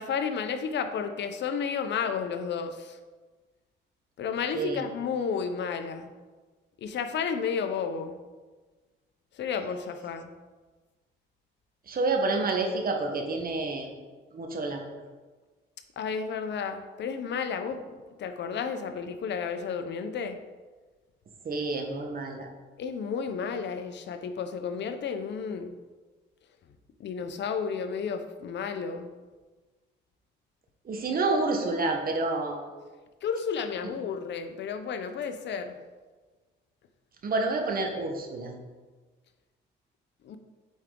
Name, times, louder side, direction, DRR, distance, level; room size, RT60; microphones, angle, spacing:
voice 1, 0.0-3.0 4.2-6.1 6.8-8.2 9.3-10.3 16.0-17.8 18.2-20.4 22.8-25.8 27.0-29.1 33.2-35.8 40.2-40.4, left 6 dB, 65° left, 8 dB, 0.7 m, -32 dB
voice 2, 4.5-4.8 11.9-13.9 14.3-14.8 21.4-22.5 30.8-32.6 37.2-38.5, right 3 dB, 45° right, 3 dB, 1.1 m, -28 dB
8.1 x 4.7 x 3.8 m, 1.3 s
cardioid pair, 90°, 20 cm